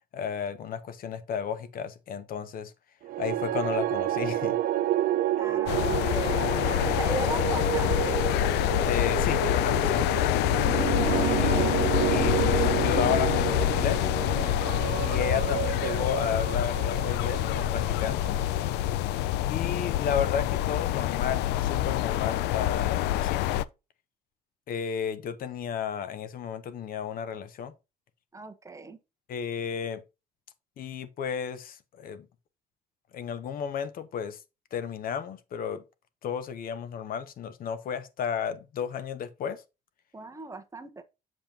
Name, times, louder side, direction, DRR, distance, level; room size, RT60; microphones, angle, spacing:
voice 1, 0.1-2.7 3.2-4.6 5.4-5.6 8.8-10.2 11.2-11.6 12.1-14.1 15.0-18.4 19.5-23.6 24.7-27.7 29.3-30.0 30.8-32.3 33.1-34.4 34.7-35.8 36.2-39.6, left 7 dB, 60° left, 0.9 m, -33 dB
sound 1, 3.0-19.3, right 13 dB, 60° right, 0.5 m, -30 dB
voice 2, 5.4-8.2 10.9-11.8 28.3-29.0 40.1-41.0, right 3 dB, 20° right, 1.0 m, -38 dB
sound 2, 5.7-23.6, left 14 dB, 85° left, 0.4 m, -26 dB
7.3 x 5.2 x 2.9 m
cardioid pair, 110°, 17 cm